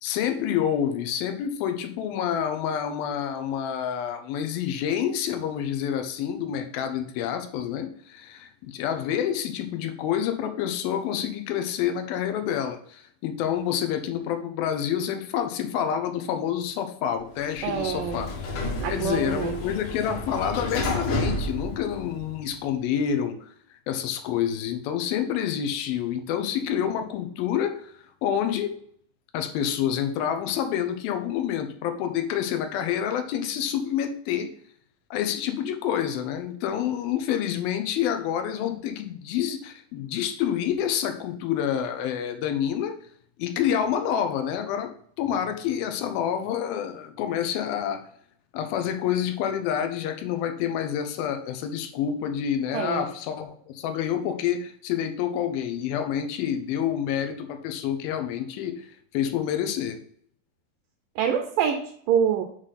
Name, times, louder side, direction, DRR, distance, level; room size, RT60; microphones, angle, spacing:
voice 1, 0.0-18.3 18.9-23.4 23.9-27.9 28.2-28.8 29.3-34.5 35.1-43.0 43.4-44.9 45.2-48.1 48.5-58.9 59.1-60.0, left 9 dB, 85° left, 7 dB, 2.6 m, -28 dB
Sliding door, 17.3-22.5, left 2 dB, 60° left, 2.7 m, -31 dB
voice 2, 17.6-18.3 18.8-19.6 52.7-53.1 61.2-62.4, right 8 dB, 75° right, 5 dB, 2.1 m, -26 dB
8.0 x 3.3 x 5.7 m, 0.62 s
omnidirectional pair, 4.1 m